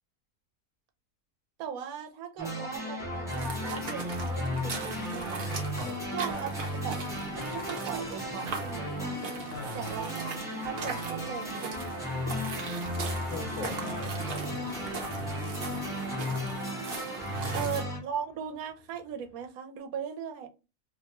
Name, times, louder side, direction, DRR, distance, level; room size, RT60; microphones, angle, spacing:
voice 1, 1.6-5.5 6.1-7.0 7.3-9.2 9.7-10.3 10.6-11.7 17.5-20.5, right 8 dB, 75° right, 1.0 m, -38 dB
sound 1, 2.4-18.0, left 1 dB, 5° right, 0.6 m, -35 dB
sound 2, 3.3-17.8, right 5 dB, 55° right, 0.6 m, -39 dB
sound 3, 7.1-19.5, left 2 dB, 45° left, 0.9 m, -53 dB
voice 2, 9.4-9.9 13.2-15.8 17.3-17.7, left 4 dB, 80° left, 1.2 m, -42 dB
2.7 x 2.2 x 2.8 m
omnidirectional pair, 1.5 m